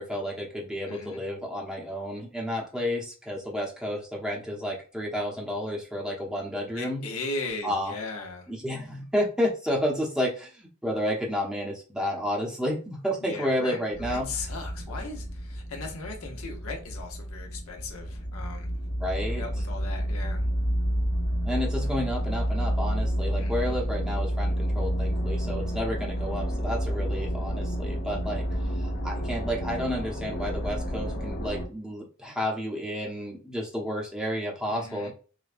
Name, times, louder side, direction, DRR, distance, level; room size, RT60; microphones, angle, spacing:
voice 1, 0.0-7.0 7.6-7.9 8.5-14.3 19.0-19.4 21.4-28.4 28.8-35.1, equal, 5° right, -2 dB, 0.8 m, -31 dB
voice 2, 0.9-1.2 6.7-8.5 13.2-13.8 14.1-18.7 19.3-20.4 23.4-23.9 34.7-35.1, left 3 dB, 75° left, 2 dB, 0.9 m, -38 dB
sound 1, 13.9-31.6, equal, 40° left, 0.8 m, -30 dB
4.9 x 2.2 x 2.5 m, 0.37 s
head